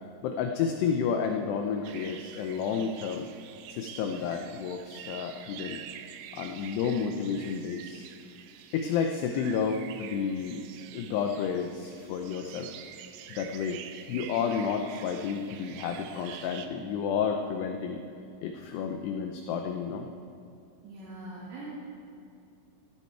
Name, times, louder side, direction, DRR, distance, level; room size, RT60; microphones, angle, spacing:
voice 1, 0.2-3.3 3.7-5.8 6.3-8.1 8.7-10.7 10.9-12.7 13.3-13.8 14.1-18.0 18.4-20.1, left 6 dB, 85° left, 4 dB, 2.4 m, -31 dB
sound 1, 1.8-16.7, right 10 dB, 85° right, 3.2 m, -47 dB
voice 2, 20.8-21.7, right 2 dB, 70° right, -9 dB, 4.7 m, -42 dB
15.0 x 13.5 x 4.5 m, 2.6 s
omnidirectional pair, 5.5 m